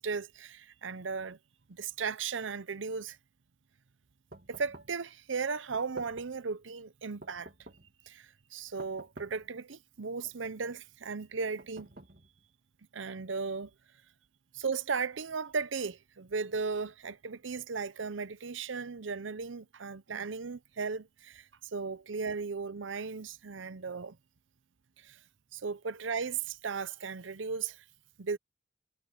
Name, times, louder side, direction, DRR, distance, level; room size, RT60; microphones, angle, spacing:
voice 1, 0.0-1.4 1.7-3.2 4.5-7.5 8.0-11.9 12.9-13.7 14.5-24.2 25.0-25.2 25.5-27.8 28.2-28.4, right 5 dB, 85° right, 0.7 m, -36 dB
sound 1, 4.3-5.0 5.7-6.5 7.2-8.0 8.8-9.5 10.2-10.8 11.6-12.5, right 2 dB, 55° right, 2.3 m, -51 dB
head